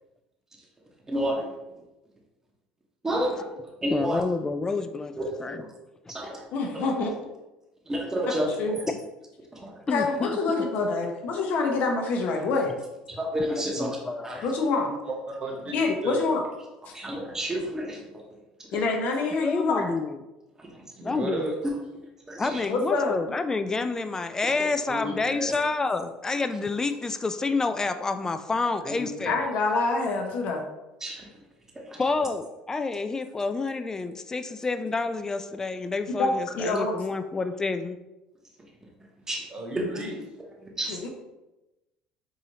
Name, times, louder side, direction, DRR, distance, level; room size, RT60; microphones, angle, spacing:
voice 1, 1.1-1.5 3.0-3.4 3.8-4.2 5.2-5.3 6.1-6.4 7.9-8.5 9.5-9.7 13.2-13.9 14.2-14.4 16.9-18.0 21.6-21.7 22.3-22.6 31.0-31.3 39.3-39.4 40.6-41.0, equal, 15° right, -1 dB, 0.9 m, -29 dB
voice 2, 3.9-5.1 5.4-5.6 9.9-10.6 13.5-14.4 19.4-20.2 21.0-21.6 22.3-29.4 31.9-38.0, left 3 dB, 20° left, 9 dB, 0.3 m, -29 dB
voice 3, 6.5-7.1 8.6-8.8 9.9-12.7 14.4-15.0 15.7-16.4 16.9-17.0 18.7-19.9 22.7-23.2 29.3-30.6 36.2-36.3 36.6-36.9 40.9-41.1, left 3 dB, 65° left, 2 dB, 0.8 m, -26 dB
voice 4, 15.1-15.7 16.0-16.2 21.0-21.6 24.9-25.5 28.5-29.3 39.5-40.2, right 1 dB, 35° right, 1 dB, 1.1 m, -34 dB
4.8 x 2.6 x 2.8 m, 1.0 s
supercardioid pair, 95°, 3 cm